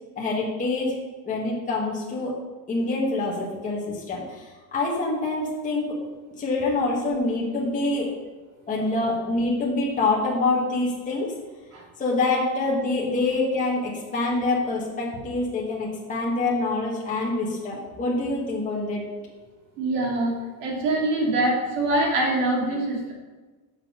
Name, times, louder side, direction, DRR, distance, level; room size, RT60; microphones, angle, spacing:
voice 1, 0.2-1.0 1.2-2.3 2.7-5.8 6.4-8.1 8.7-11.3 12.0-19.0, left 2 dB, 15° left, -5 dB, 1.6 m, -26 dB
voice 2, 19.8-20.3 20.6-23.1, right 2 dB, 65° right, -2 dB, 2.8 m, -24 dB
7.3 x 6.2 x 5.1 m, 1.3 s
cardioid pair, 165°, 49 cm